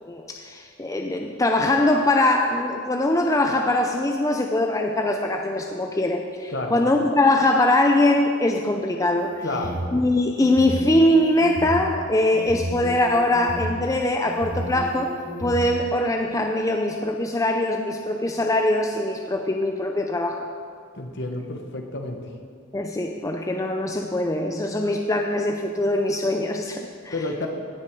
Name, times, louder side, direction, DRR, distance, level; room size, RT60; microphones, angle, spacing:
voice 1, 0.0-9.4 9.9-15.1 15.4-20.5 22.7-27.5, left 1 dB, 15° left, 3 dB, 0.5 m, -22 dB
sound 1, 9.2-9.9 10.4-11.8 12.3-13.6 14.2-15.5, equal, 25° right, 2.6 m, -33 dB
voice 2, 9.4-9.8 20.9-22.2 27.1-27.5, left 2 dB, 55° left, 4 dB, 1.2 m, -30 dB
17.0 x 7.4 x 4.6 m, 2.2 s
head